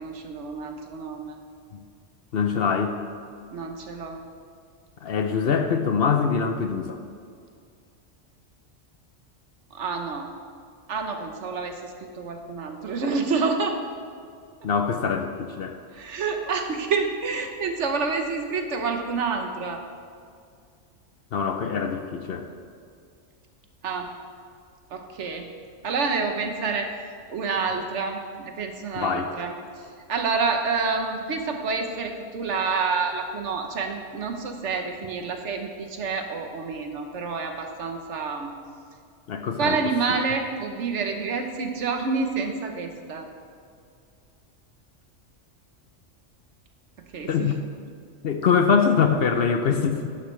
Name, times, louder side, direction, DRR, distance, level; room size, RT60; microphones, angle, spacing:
voice 1, 0.0-1.4 3.5-4.2 9.7-10.3 10.9-11.8 12.2-13.8 15.9-19.8 23.8-24.1 24.9-25.5 25.8-26.9 27.3-29.5 30.1-38.5 39.6-43.3 47.1-47.5, right 4 dB, 70° right, 5 dB, 1.2 m, -28 dB
voice 2, 2.3-3.0 5.0-7.0 14.6-15.8 21.3-22.4 29.0-29.3 39.3-39.8 40.1-40.2 47.3-47.6 48.2-50.1, left 6 dB, 60° left, 6 dB, 0.8 m, -23 dB
11.0 x 10.0 x 3.2 m, 2.3 s
omnidirectional pair, 1.3 m